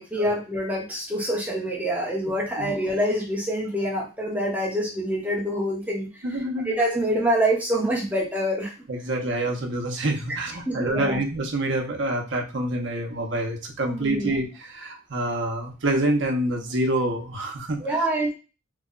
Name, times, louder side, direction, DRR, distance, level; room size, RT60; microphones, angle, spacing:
voice 1, 0.0-6.4 6.6-8.7 10.7-11.2 13.9-14.4 17.8-18.3, equal, 10° right, -3 dB, 0.9 m, -26 dB
voice 2, 6.2-6.7 8.9-17.8, right 1 dB, 60° right, 2 dB, 0.8 m, -27 dB
3.2 x 2.2 x 3.7 m, 0.31 s
head